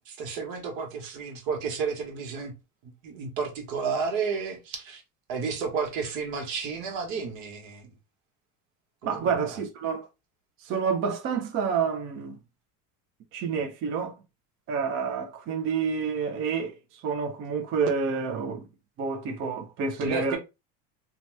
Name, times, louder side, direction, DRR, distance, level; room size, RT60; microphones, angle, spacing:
voice 1, 0.1-2.5 2.8-5.0 5.3-7.9 9.0-9.3 20.0-20.4, right 5 dB, 75° right, 1.2 m, -32 dB
voice 2, 9.0-10.1 10.6-12.4 13.3-14.2 14.7-18.6 19.0-20.4, right 5 dB, 35° right, 0.4 m, -28 dB
2.8 x 2.2 x 3.1 m
cardioid pair, 155°, 40 cm